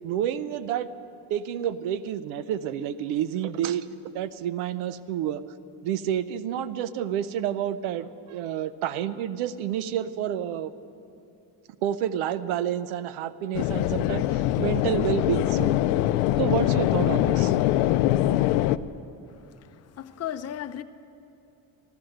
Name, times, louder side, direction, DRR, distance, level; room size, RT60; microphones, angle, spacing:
voice 1, 0.0-0.9 1.3-5.4 5.8-10.7 11.8-15.7 16.4-17.5, right 10 dB, 90° right, 0.7 m, -29 dB
sound 1, 13.5-18.8, left 14 dB, 90° left, 0.5 m, -23 dB
voice 2, 19.3-20.8, left 10 dB, 30° left, 0.6 m, -36 dB
13.5 x 12.5 x 7.8 m
cardioid pair, 95°, 48 cm